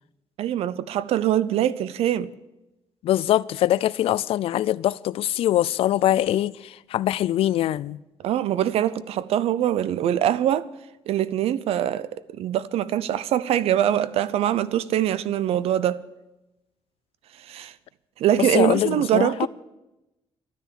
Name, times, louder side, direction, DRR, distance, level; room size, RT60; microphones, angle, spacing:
voice 1, 0.4-2.3 8.2-10.7 11.1-16.0 17.4-17.7 18.2-19.5, right 11 dB, 90° right, 0.6 m, -23 dB
voice 2, 3.0-8.0 18.4-19.5, left 13 dB, 75° left, 0.4 m, -23 dB
12.5 x 10.0 x 7.6 m
cardioid pair, 165°, 10 cm